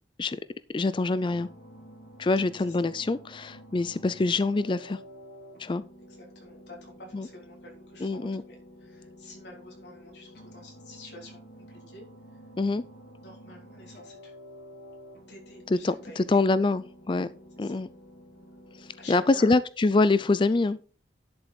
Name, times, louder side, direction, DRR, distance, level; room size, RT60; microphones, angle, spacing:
voice 1, 0.7-1.5 2.2-5.0 5.6-5.8 7.1-7.3 8.0-8.4 12.6-12.8 15.7-17.3 17.6-17.9 18.8-20.8, left 3 dB, 30° left, 15 dB, 0.4 m, -25 dB
sound 1, 1.3-19.5, equal, 60° left, 2.2 m, -50 dB
voice 2, 6.1-12.0 12.3-12.4 13.2-14.3 15.3-16.4 17.6-17.8 19.0-19.4, left 1 dB, 80° left, -1 dB, 3.5 m, -49 dB
11.0 x 7.0 x 4.3 m, 0.39 s
head